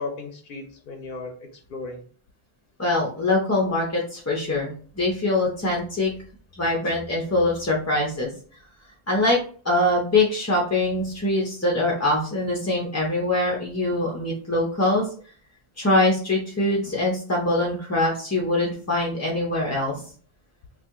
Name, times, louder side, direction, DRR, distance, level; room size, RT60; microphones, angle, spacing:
voice 1, 0.0-2.0, left 3 dB, 65° left, 3 dB, 0.7 m, -35 dB
voice 2, 2.8-6.1 6.6-8.3 9.1-9.4 9.6-15.1 15.8-20.0, left 2 dB, 20° left, -3 dB, 0.4 m, -23 dB
2.8 x 2.4 x 3.5 m, 0.43 s
omnidirectional pair, 1.0 m